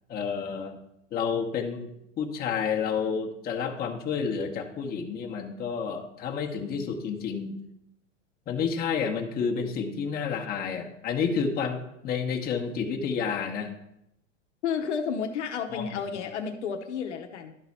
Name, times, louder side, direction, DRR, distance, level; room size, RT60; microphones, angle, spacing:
voice 1, 0.1-0.8 1.1-1.9 2.2-7.6 8.5-11.8 12.0-13.7 15.7-16.0, left 6 dB, 25° left, 1 dB, 1.0 m, -30 dB
voice 2, 14.6-17.6, left 6 dB, 65° left, 5 dB, 0.9 m, -31 dB
12.0 x 4.0 x 4.2 m, 0.81 s
hypercardioid pair, 105°, 38 cm